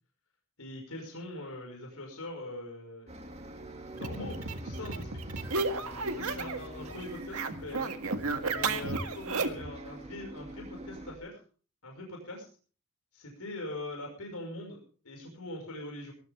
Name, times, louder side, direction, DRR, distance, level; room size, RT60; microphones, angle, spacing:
voice 1, 0.6-3.1 3.9-5.2 6.1-7.9 8.5-11.4 11.8-12.5 13.1-16.1, left 1 dB, 80° left, 1 dB, 6.0 m, -42 dB
Bus, 3.1-11.2, equal, 30° right, 2.2 m, -44 dB
sound 1, 4.0-6.7 6.9-9.7, right 3 dB, 70° right, 1.8 m, -33 dB
20.0 x 14.5 x 3.6 m, 0.40 s
head